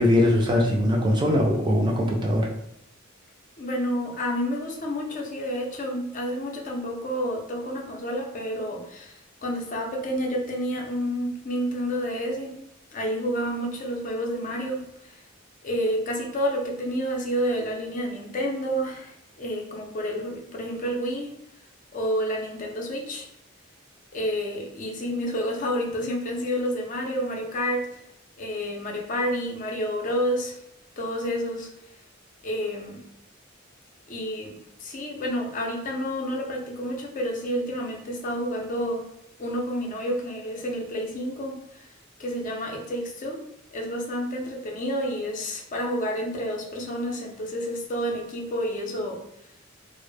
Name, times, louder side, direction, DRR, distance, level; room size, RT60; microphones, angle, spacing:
voice 1, 0.0-2.5, left 1 dB, 20° right, 0 dB, 0.4 m, -21 dB
voice 2, 3.6-12.6 12.9-15.2 15.6-21.3 21.9-23.3 24.1-27.9 28.4-30.6 31.0-31.7 32.4-33.0 34.1-34.5 34.8-39.1 39.4-41.9 42.2-43.4 43.7-49.2, equal, 40° left, 1 dB, 0.4 m, -29 dB
2.1 x 2.0 x 3.1 m, 0.77 s
head